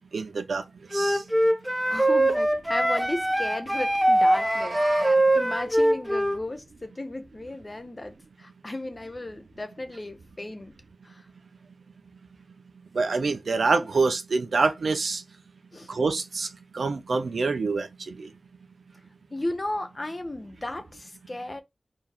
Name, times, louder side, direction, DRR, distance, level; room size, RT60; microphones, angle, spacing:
voice 1, 0.1-0.6 0.9-1.2 12.9-15.2 15.9-16.5 16.7-18.3, right 4 dB, 85° right, 0.9 m, -26 dB
Wind instrument woodwind instrument, 0.9-6.4, right 1 dB, 5° right, 1.1 m, -22 dB
voice 2, 1.8-10.7 11.0-11.3 15.7-15.9 19.3-21.6, left 1 dB, 40° left, 1.2 m, -35 dB
Meow, 4.1-5.2, right 2 dB, 50° right, 1.1 m, -34 dB
4.6 x 3.1 x 3.7 m
cardioid pair, 45°, 0 cm